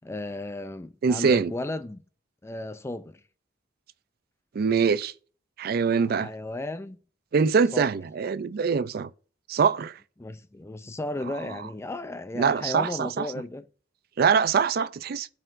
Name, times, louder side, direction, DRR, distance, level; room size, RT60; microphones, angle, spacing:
voice 1, 0.0-2.0 2.4-3.2 6.0-7.0 7.7-7.9 10.2-13.7, left 2 dB, 15° left, 0.4 m, -34 dB
voice 2, 1.0-1.5 4.5-5.1 5.6-6.3 7.3-9.1 9.5-10.0 12.4-13.3 14.2-15.3, right 5 dB, 50° right, 0.4 m, -23 dB
12.5 x 4.3 x 2.6 m
head